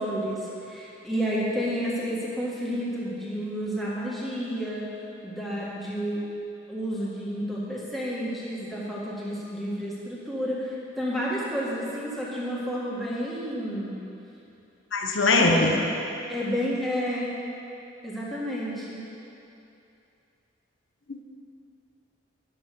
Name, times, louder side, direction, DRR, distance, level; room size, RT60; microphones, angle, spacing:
voice 1, 0.0-4.9 5.2-6.2 6.7-13.9 15.3-15.8 16.3-17.4 18.0-19.0, equal, ahead, -7 dB, 1.9 m, -30 dB
voice 2, 14.9-15.7 21.1-21.2, left 3 dB, 75° left, 2 dB, 1.0 m, -21 dB
12.5 x 6.3 x 6.8 m, 2.8 s
head